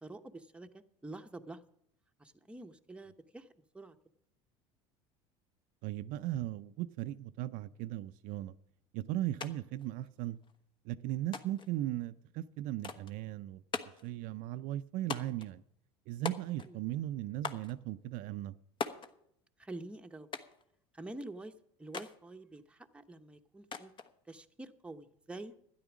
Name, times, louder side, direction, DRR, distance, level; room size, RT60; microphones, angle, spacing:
voice 1, 0.0-1.6 2.2-3.5 3.7-4.0 16.6-16.8 19.6-20.3 20.9-21.5 21.8-23.9 24.3-25.5, right 2 dB, 5° right, 6 dB, 0.9 m, -47 dB
voice 2, 5.8-8.5 8.9-10.4 10.8-13.6 14.0-15.6 16.1-18.5, right 14 dB, 65° right, 11 dB, 0.5 m, -37 dB
sound 1, 9.4-9.5 9.8-10.6 11.3-11.7 12.8-13.2 13.7-14.1 15.1-15.5 16.3-16.8 17.4-17.7 18.8-19.1 20.3-20.6 21.9-22.2 23.7-24.1, left 5 dB, 35° left, 1.2 m, -40 dB
12.5 x 10.5 x 6.1 m, 0.72 s
supercardioid pair, 95°, 15 cm